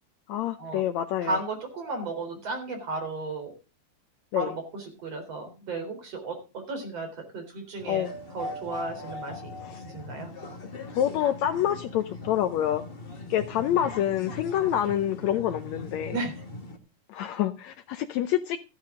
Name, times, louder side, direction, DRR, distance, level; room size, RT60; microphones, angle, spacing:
voice 1, 0.3-1.4 4.3-4.5 7.9-8.1 9.6-9.8 10.9-12.8 13.3-16.2 17.1-18.6, left 11 dB, 75° left, 10 dB, 1.8 m, -27 dB
voice 2, 1.2-3.5 4.3-10.3 16.1-16.3, right 3 dB, 50° right, 4 dB, 4.8 m, -34 dB
sound 1, 7.8-16.8, left 2 dB, 35° left, 0.9 m, -40 dB
14.5 x 10.5 x 3.8 m, 0.30 s
omnidirectional pair, 3.6 m